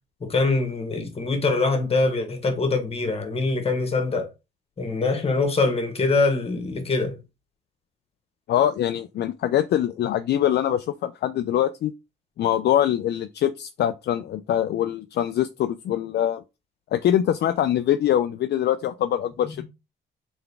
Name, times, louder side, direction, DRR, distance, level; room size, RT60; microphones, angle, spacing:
voice 1, 0.2-4.3 4.8-7.1 19.4-19.6, left 3 dB, 30° left, 1.4 m, -24 dB
voice 2, 8.5-11.9 12.4-16.4 16.9-19.6, left 11 dB, 55° left, 0.4 m, -23 dB
3.8 x 3.4 x 3.5 m
cardioid pair, 90°, 20 cm